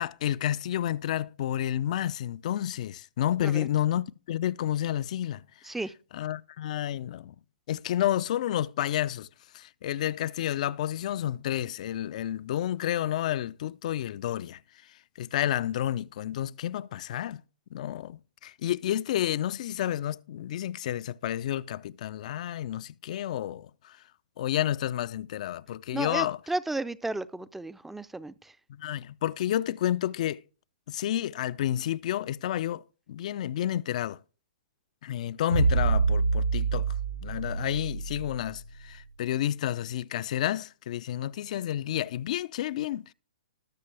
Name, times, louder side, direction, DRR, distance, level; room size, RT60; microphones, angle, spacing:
voice 1, 0.0-5.4 6.1-7.3 7.7-9.3 9.5-14.6 15.2-17.4 17.7-24.0 24.4-26.4 28.7-30.4 30.9-32.8 33.1-34.2 35.0-36.9 37.2-43.1, left 12 dB, 50° left, 0.5 m, -30 dB
voice 2, 25.9-28.3, right 2 dB, 5° right, 0.6 m, -33 dB
sound 1, 35.5-38.9, right 4 dB, 90° right, 6.7 m, -27 dB
19.5 x 6.6 x 3.4 m
hypercardioid pair, 125°, 5 cm